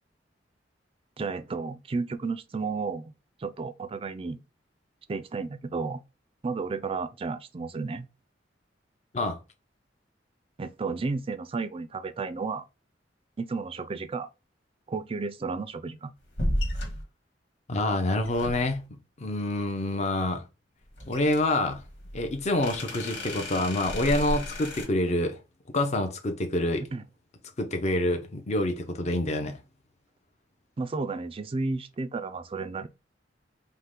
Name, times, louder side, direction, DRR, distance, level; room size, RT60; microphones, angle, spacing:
voice 1, 1.2-3.1 3.4-4.4 5.1-6.0 6.4-8.1 10.6-12.6 13.4-14.3 14.9-16.1 26.9-27.0 30.8-32.9, right 4 dB, 30° right, 0.4 m, -32 dB
sound 1, 16.4-17.0 18.2-18.9 21.0-24.9, left 1 dB, 75° left, 1.8 m, -33 dB
voice 2, 17.7-20.4 21.1-21.8 22.1-25.4 25.7-26.8 27.6-29.6, left 1 dB, 40° left, 0.6 m, -27 dB
5.4 x 2.1 x 3.6 m
head